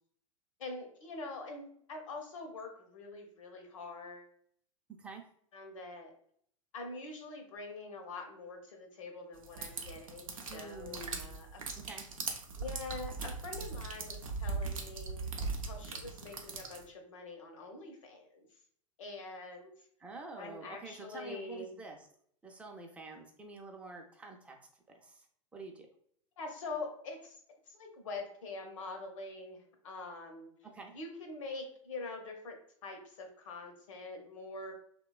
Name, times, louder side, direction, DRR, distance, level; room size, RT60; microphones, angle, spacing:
voice 1, 0.6-4.3 5.5-6.1 6.7-11.6 12.5-18.5 19.0-19.7 20.4-21.7 26.4-27.4 27.7-29.6 29.8-30.5 30.9-32.6 32.8-34.7, left 3 dB, 70° left, 3 dB, 0.7 m, -44 dB
sound 1, 9.4-16.9, right 4 dB, 85° right, 0.5 m, -40 dB
voice 2, 10.5-11.2 11.7-12.0 20.0-22.1 22.4-24.6 25.0-25.3 25.5-25.9 30.7-30.9, right 3 dB, 5° right, 1 dB, 0.4 m, -47 dB
3.0 x 2.2 x 2.3 m, 0.63 s
hypercardioid pair, 95°, 17 cm